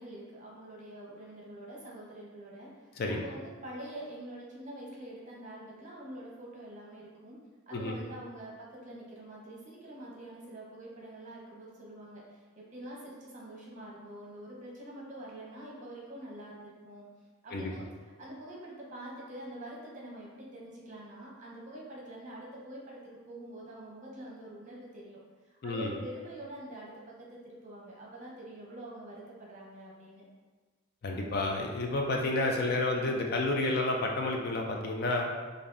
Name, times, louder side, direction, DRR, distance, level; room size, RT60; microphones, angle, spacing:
voice 1, 0.0-7.4 7.7-17.1 17.4-17.9 18.2-25.2 25.4-26.9 27.2-30.2, right 1 dB, 35° right, -4 dB, 0.8 m, -45 dB
voice 2, 31.0-35.3, left 2 dB, 50° left, 1 dB, 0.4 m, -30 dB
4.9 x 2.6 x 2.5 m, 1.4 s
head